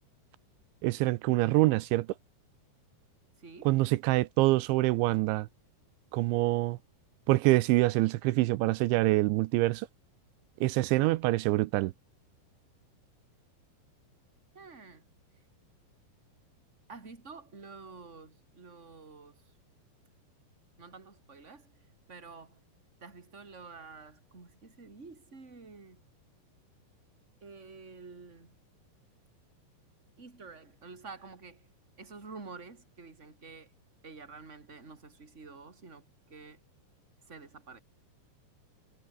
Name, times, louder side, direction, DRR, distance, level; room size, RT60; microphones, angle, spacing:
voice 1, 0.8-2.1 3.6-5.5 6.1-6.8 7.3-9.9 10.6-11.9, right 20 dB, 85° right, 3.1 m, -25 dB
voice 2, 3.4-3.7 14.5-15.0 16.9-19.4 20.8-21.7 22.1-22.6 23.0-26.0 27.4-28.6 30.2-31.7 32.0-33.7 34.0-36.6 37.3-37.8, right 4 dB, 15° right, 3.7 m, -49 dB
omnidirectional pair, 5.3 m